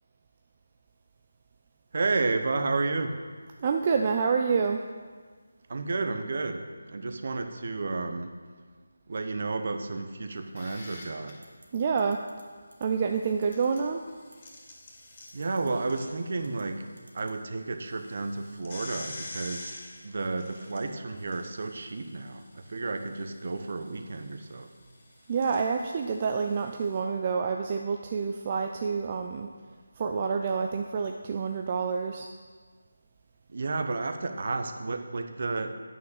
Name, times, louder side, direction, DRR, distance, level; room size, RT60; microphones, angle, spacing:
voice 1, 1.9-3.2 5.7-8.4 9.1-11.5 15.3-16.9 17.1-19.8 20.0-24.7 33.5-35.8, right 3 dB, 50° right, 7 dB, 0.9 m, -32 dB
voice 2, 3.6-4.8 11.7-12.2 12.8-14.0 25.3-29.5 30.0-32.3, right 5 dB, 30° right, 3 dB, 0.4 m, -28 dB
sound 1, 10.3-11.3 13.3-16.9 17.2-17.3 17.8-27.0, left 2 dB, 35° left, 2.2 m, -47 dB
sound 2, 11.4-11.7 12.0-12.4 12.7-12.9 13.4-13.8 14.3-14.5 15.3-15.7 16.4-16.6 17.0-17.4, right 1 dB, 80° right, 1.9 m, -54 dB
9.3 x 6.0 x 6.6 m, 1.5 s
figure-of-eight pair, 165°, 0 cm